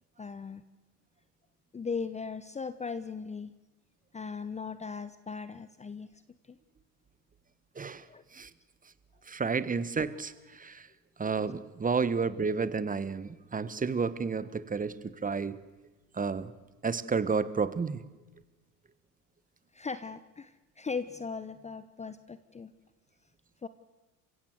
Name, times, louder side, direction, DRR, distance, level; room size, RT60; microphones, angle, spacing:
voice 1, 0.2-0.6 1.7-3.5 4.1-6.1 6.5-6.6 8.1-8.2 19.7-22.7 23.6-23.7, left 5 dB, 15° left, 14 dB, 0.9 m, -38 dB
voice 2, 9.3-10.9 11.2-15.6 16.2-16.5 16.8-18.0, right 5 dB, 15° right, 15 dB, 1.3 m, -31 dB
29.0 x 16.0 x 7.9 m, 1.1 s
hypercardioid pair, 75°, 48 cm